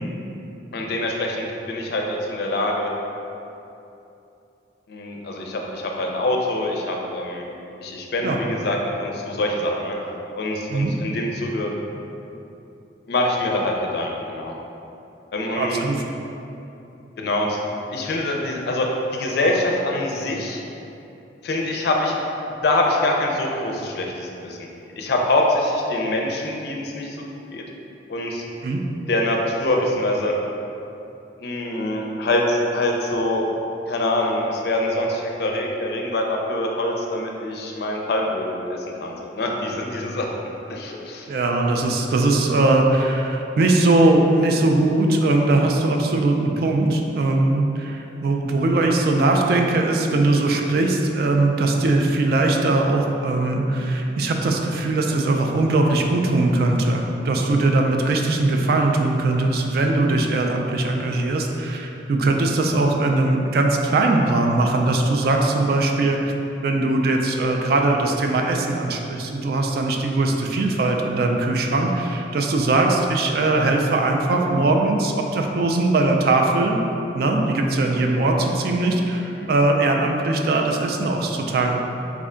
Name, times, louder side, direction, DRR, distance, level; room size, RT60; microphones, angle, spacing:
voice 1, 0.7-2.9 4.9-7.4 7.8-10.0 10.3-11.8 13.1-14.5 15.3-15.8 17.2-17.6 17.9-20.6 21.4-22.1 22.6-24.6 25.0-27.6 28.1-28.4 29.1-30.3 31.4-33.5 33.9-40.3 40.7-41.3 79.4-79.5, left 1 dB, 60° left, 0 dB, 0.4 m, -24 dB
voice 2, 15.5-16.0 28.6-28.8 41.3-66.3 66.6-76.8 77.1-81.9, right 2 dB, 60° right, 2 dB, 0.3 m, -20 dB
3.5 x 2.2 x 3.7 m, 2.8 s
head